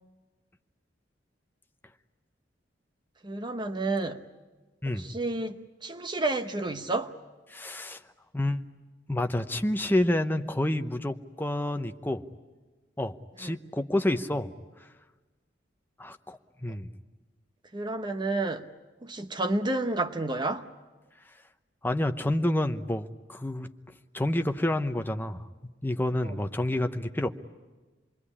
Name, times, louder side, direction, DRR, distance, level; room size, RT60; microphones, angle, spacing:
voice 1, 3.2-4.2 4.9-7.1 13.4-13.5 17.7-18.7 19.0-20.7 26.2-26.4, right 2 dB, 25° right, 7 dB, 0.9 m, -30 dB
voice 2, 7.5-8.0 8.3-8.6 9.1-12.2 13.0-14.5 14.8-14.9 16.0-16.9 21.8-23.7 24.1-25.5 25.8-27.3, left 1 dB, 10° left, 8 dB, 0.9 m, -29 dB
27.5 x 21.5 x 9.9 m, 1.3 s
head